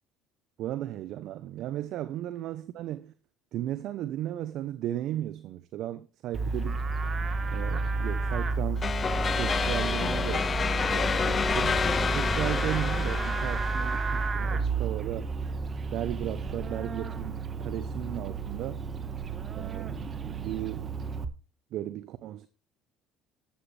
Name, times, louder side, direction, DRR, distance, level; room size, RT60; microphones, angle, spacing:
voice 1, 0.6-3.1 3.5-6.8 7.5-8.8 9.4-10.5 10.9-15.3 15.9-18.8 19.5-20.9 21.7-22.5, right 13 dB, 65° right, 0.9 m, -35 dB
Livestock farm animals working animals, 6.3-21.2, right 3 dB, 35° right, 1.6 m, -31 dB
sound 1, 8.8-14.3, left 5 dB, 30° left, 0.9 m, -29 dB
13.0 x 11.5 x 3.4 m
supercardioid pair, 85°, 0 cm